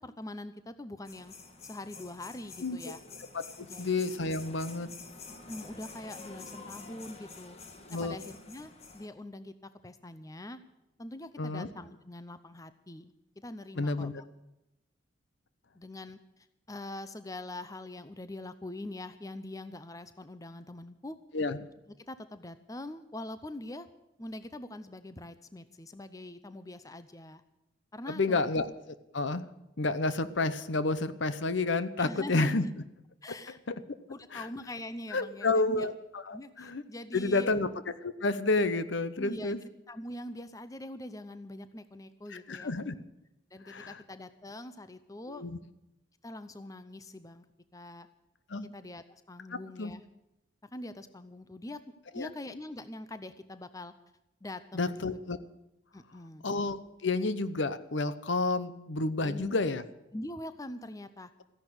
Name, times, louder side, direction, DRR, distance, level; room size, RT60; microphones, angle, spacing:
voice 1, 0.0-1.3 1.6-3.0 3.6-3.9 5.5-7.6 7.9-9.5 9.8-10.6 11.0-14.2 15.8-21.2 22.1-23.9 24.2-27.4 27.9-28.4 32.0-32.6 33.2-33.6 34.1-35.9 36.3-37.6 39.2-39.6 39.9-42.7 43.5-45.5 46.2-47.4 47.7-48.1 48.7-50.0 50.6-51.8 52.1-53.9 54.4-55.0 55.9-56.5 59.2-59.5 60.1-61.3, left 1 dB, 15° left, 12 dB, 0.6 m, -43 dB
sound 1, 1.1-9.1, left 4 dB, 30° left, 1.4 m, -48 dB
voice 2, 2.6-3.0 3.3-4.9 7.9-8.2 11.4-11.7 13.8-14.1 21.3-21.6 28.1-28.7 29.1-29.4 29.8-32.7 33.7-33.8 34.3-34.5 35.1-36.8 37.1-37.7 38.0-39.6 42.3-42.9 43.7-44.0 45.3-45.6 48.5-48.7 49.8-49.9 52.1-52.3 54.7-55.4 56.4-59.8, left 3 dB, 70° left, 13 dB, 0.9 m, -30 dB
15.0 x 11.0 x 8.0 m, 0.91 s
head